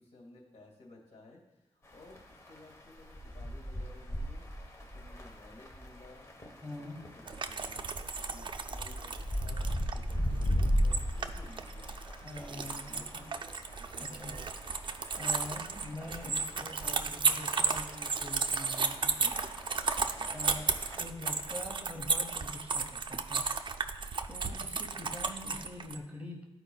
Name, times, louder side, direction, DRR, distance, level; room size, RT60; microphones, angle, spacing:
voice 1, 0.0-11.9 12.3-14.4, left 2 dB, 70° left, -1 dB, 2.0 m, -56 dB
sound 1, 1.9-21.0, equal, 25° left, 0.9 m, -38 dB
voice 2, 6.6-7.0 12.2-13.2 14.0-14.3 15.1-19.3 20.2-20.7 21.0-23.5 24.3-26.5, left 1 dB, 15° right, 0 dB, 1.0 m, -44 dB
sound 2, 7.3-26.0, right 5 dB, 45° right, 0.4 m, -34 dB
13.0 x 4.6 x 2.3 m, 0.96 s
wide cardioid pair, 135°, 11 cm